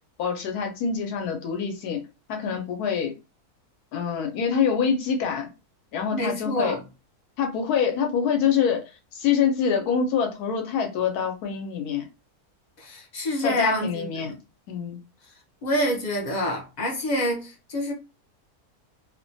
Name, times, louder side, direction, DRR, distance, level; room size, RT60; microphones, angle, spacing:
voice 1, 0.2-2.0 2.3-3.1 3.9-5.5 5.9-6.8 7.4-8.8 9.1-12.1 13.4-14.3 14.7-15.0, left 7 dB, 80° left, 1.1 m, -25 dB
voice 2, 6.1-6.8 12.8-14.3 15.6-17.9, left 1 dB, 55° left, 0.4 m, -27 dB
2.8 x 2.1 x 2.6 m
omnidirectional pair, 1.6 m